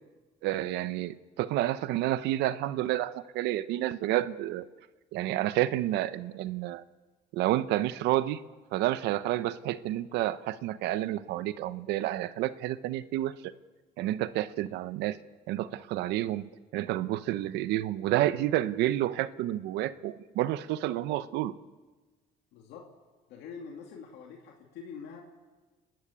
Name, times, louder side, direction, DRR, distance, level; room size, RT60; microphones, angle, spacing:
voice 1, 0.4-4.6 5.1-6.8 7.3-8.4 8.7-13.3 14.0-15.2 15.5-16.4 16.7-21.5, right 14 dB, 90° right, 15 dB, 0.8 m, -30 dB
voice 2, 22.5-22.9 23.3-25.2, left 6 dB, 85° left, 1 dB, 2.6 m, -45 dB
30.0 x 12.5 x 8.6 m, 1.3 s
cardioid pair, 110°, 17 cm